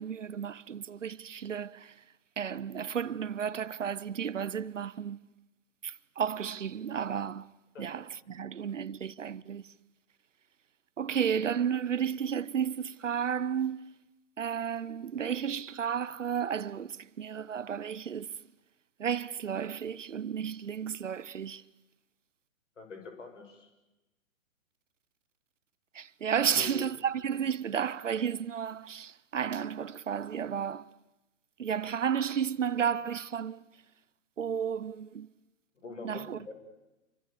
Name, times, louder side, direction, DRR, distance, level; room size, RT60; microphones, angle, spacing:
voice 1, 0.0-2.0 2.4-5.2 5.8-7.5 7.8-9.8 11.0-13.8 14.4-18.4 19.0-21.6 25.9-30.9 31.6-33.7 34.4-35.3 36.0-36.4, right 8 dB, 65° right, 0.9 m, -32 dB
voice 2, 22.8-23.7 26.5-26.9 35.8-36.5, left 4 dB, 65° left, 6.7 m, -44 dB
29.0 x 25.0 x 6.9 m
figure-of-eight pair, 120°, 40 cm